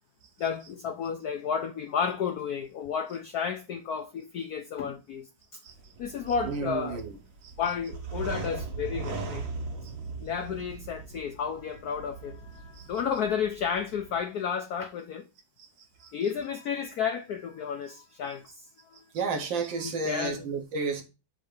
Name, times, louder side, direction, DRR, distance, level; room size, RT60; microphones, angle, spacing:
voice 1, 0.4-5.6 6.0-7.1 7.6-9.4 10.2-15.2 16.0-19.0 19.8-20.4, left 7 dB, 70° left, 0.9 m, -32 dB
sound 1, 5.7-14.2, right 4 dB, 50° right, 1.2 m, -39 dB
voice 2, 6.5-7.1 7.4-7.5 12.8-12.9 15.6-15.7 16.0-16.1 19.1-21.0, right 4 dB, 70° right, 1.8 m, -32 dB
7.6 x 2.8 x 4.9 m
omnidirectional pair, 2.3 m